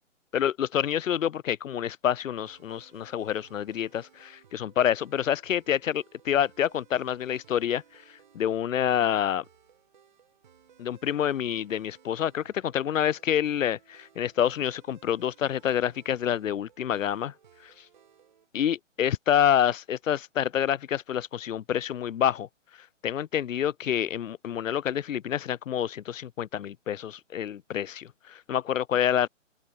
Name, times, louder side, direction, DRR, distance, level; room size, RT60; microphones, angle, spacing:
voice 1, 0.3-7.8 8.3-9.4 10.8-17.3 17.6-17.7 18.5-22.5 23.0-29.3, left 10 dB, 85° left, 0.6 m, -27 dB
sound 1, 2.4-18.5, right 8 dB, 35° right, 3.8 m, -60 dB
open air
hypercardioid pair, 175°, 38 cm